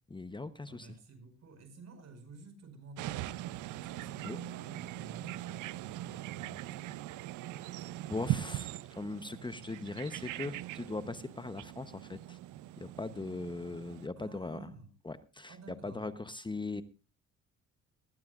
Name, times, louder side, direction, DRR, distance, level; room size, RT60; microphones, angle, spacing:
voice 1, 0.1-0.9 4.2-4.4 8.1-12.4 12.8-14.7 15.0-15.6 15.8-16.8, left 3 dB, 15° left, 12 dB, 0.9 m, -40 dB
voice 2, 0.7-7.0 14.2-14.9 15.5-16.1, right 3 dB, 60° right, 8 dB, 5.3 m, -52 dB
sound 1, 3.0-14.1, right 14 dB, 85° right, 0.6 m, -41 dB
20.0 x 15.0 x 2.5 m, 0.33 s
cardioid pair, 90°, 30 cm